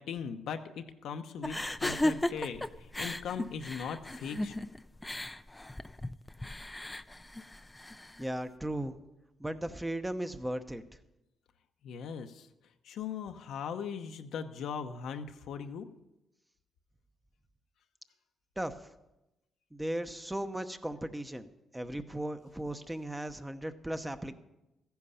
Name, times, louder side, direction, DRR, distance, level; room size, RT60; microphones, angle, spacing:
voice 1, 0.0-4.5 11.8-12.5 12.8-15.9, left 7 dB, 75° left, 7 dB, 0.9 m, -39 dB
sound 1, 1.4-8.3, left 1 dB, 10° left, 0.5 m, -36 dB
voice 2, 8.2-9.0 9.4-10.8 18.6-18.8 19.7-21.5 21.7-24.3, right 1 dB, 10° right, 9 dB, 0.8 m, -36 dB
14.5 x 10.5 x 5.6 m, 0.95 s
cardioid pair, 90°, 0 cm